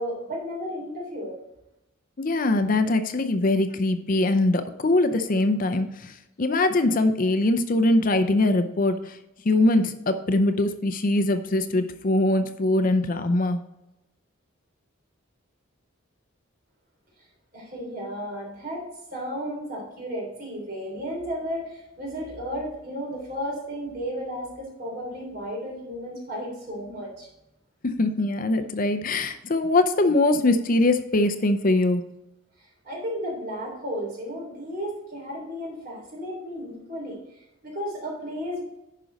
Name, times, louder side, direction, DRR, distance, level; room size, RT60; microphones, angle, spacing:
voice 1, 0.0-1.4 17.5-18.8 19.1-27.3 32.6-38.6, equal, 45° right, -1 dB, 3.3 m, -33 dB
voice 2, 2.2-9.2 9.4-13.6 28.0-32.0, left 2 dB, 40° left, 9 dB, 0.5 m, -22 dB
10.5 x 5.2 x 4.0 m, 0.92 s
head